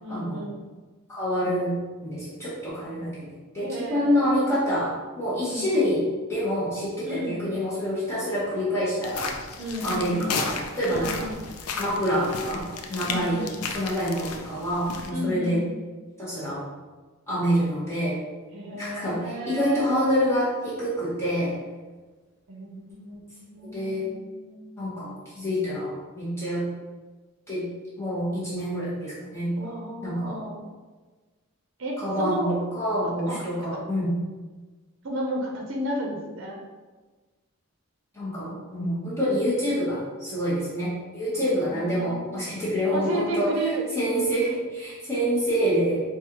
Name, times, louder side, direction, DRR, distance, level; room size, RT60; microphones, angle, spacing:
voice 1, 0.0-0.6 3.6-4.6 5.5-5.7 7.0-7.4 9.6-10.4 10.8-11.4 13.0-13.6 15.1-15.7 18.5-20.4 22.5-24.8 29.6-30.7 31.8-32.6 33.2-33.4 33.7-33.8 35.0-36.6 41.4-42.4 42.9-43.8, right 1 dB, 60° right, -1 dB, 0.6 m, -33 dB
voice 2, 1.1-1.7 2.0-3.3 3.5-4.9 5.2-6.0 6.3-9.3 9.8-11.2 11.8-12.6 12.9-15.6 16.2-16.6 17.3-18.1 18.7-21.5 23.7-24.1 24.8-26.6 27.5-27.6 28.0-29.5 30.0-30.4 32.0-34.1 38.1-43.5 43.9-46.0, equal, 10° left, -10 dB, 0.9 m, -27 dB
sound 1, 9.0-15.1, left 5 dB, 85° left, 0.4 m, -34 dB
4.1 x 2.3 x 2.9 m, 1.3 s
head